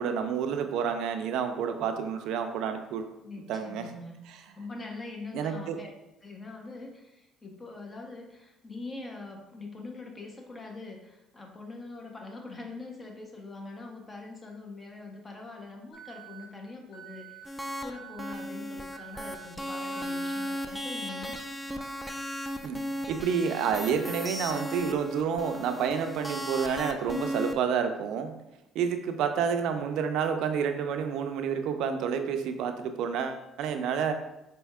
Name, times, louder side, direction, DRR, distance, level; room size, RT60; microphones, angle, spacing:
voice 1, 0.0-3.1 3.5-3.9 5.3-5.8 22.6-22.8 23.1-28.3 28.7-34.1, right 7 dB, 75° right, 7 dB, 0.3 m, -29 dB
voice 2, 3.2-4.2 4.6-5.9 6.2-17.4 17.8-21.3, left 3 dB, 30° left, 2 dB, 0.7 m, -43 dB
Alarm, 15.9-16.4 16.9-17.4 17.9-18.4 18.9-19.4 19.9-20.4, right 12 dB, 90° left, 0.8 m, -48 dB
sound 1, 17.4-17.9 18.2-27.5, equal, 5° left, 0.3 m, -36 dB
4.3 x 2.7 x 2.3 m, 0.90 s
supercardioid pair, 75°, 0 cm